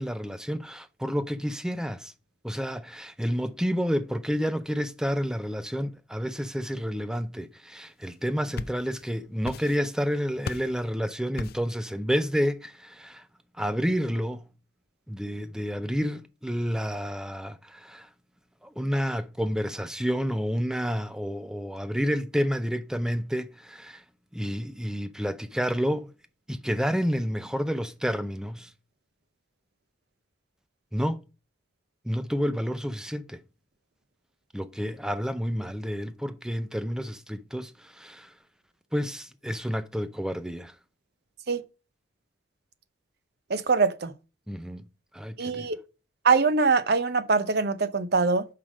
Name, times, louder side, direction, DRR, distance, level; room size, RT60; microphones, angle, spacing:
voice 1, 0.0-2.1 2.4-13.2 13.6-14.5 15.1-18.1 18.6-24.0 24.3-26.1 26.5-28.7 30.9-31.2 32.0-33.4 34.5-38.3 38.9-40.7 44.5-44.9 45.1-45.7, equal, 5° right, 0.5 m, -30 dB
sound 1, 8.2-9.1 9.4-10.0 10.4-10.8 11.4-11.8, left 4 dB, 50° left, 0.4 m, -38 dB
voice 2, 43.5-44.1 45.4-45.8 46.2-48.5, right 4 dB, 55° right, 0.7 m, -23 dB
5.7 x 5.0 x 6.1 m
head